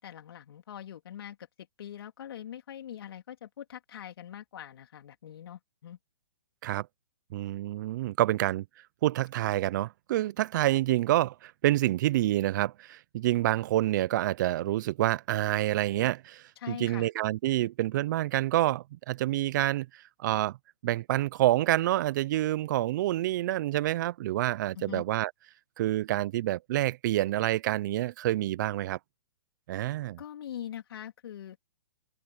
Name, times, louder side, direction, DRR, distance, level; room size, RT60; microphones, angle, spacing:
voice 1, 0.0-6.0 16.6-17.1 24.8-25.0 30.2-31.6, left 10 dB, 60° left, 3.6 m, -43 dB
voice 2, 7.3-8.6 9.0-20.6 20.8-25.3 25.8-29.0 29.7-30.2, right 15 dB, 45° right, 0.9 m, -28 dB
hypercardioid pair, 135°, 14 cm